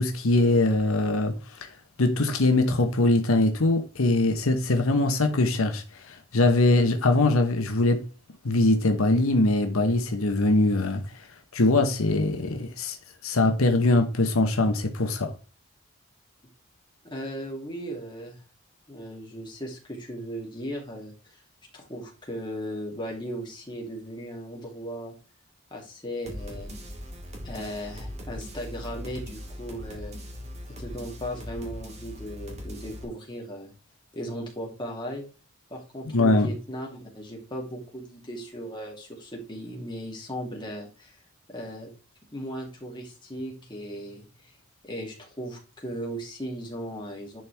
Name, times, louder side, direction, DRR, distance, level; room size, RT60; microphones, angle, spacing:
voice 1, 0.0-1.7 2.0-8.1 8.4-11.0 11.5-13.0 13.2-15.3 36.1-36.5, left 2 dB, 80° left, 1.0 m, -22 dB
voice 2, 17.0-18.4 18.9-21.4 21.7-25.1 25.7-26.7 27.4-30.2 30.8-33.7 34.1-35.2 35.7-41.2 41.5-41.9 42.3-44.6 44.8-47.4, equal, 20° left, 2.6 m, -37 dB
sound 1, 26.2-33.0, equal, 30° right, 1.9 m, -39 dB
10.5 x 4.5 x 3.4 m
head